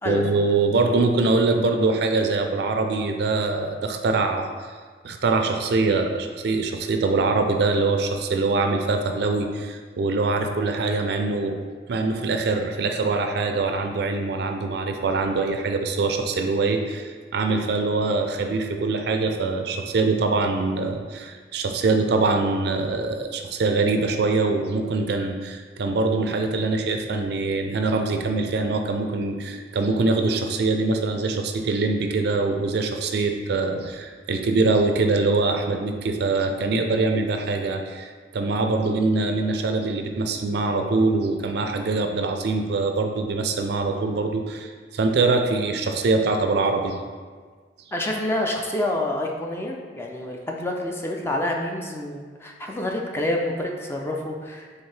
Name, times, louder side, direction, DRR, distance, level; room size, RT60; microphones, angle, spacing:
voice 1, 0.0-4.5 5.0-11.6 11.9-47.0, right 3 dB, 65° right, 5 dB, 0.4 m, -23 dB
voice 2, 47.9-54.8, left 1 dB, 15° left, 0 dB, 0.4 m, -28 dB
4.5 x 3.5 x 3.3 m, 1.5 s
head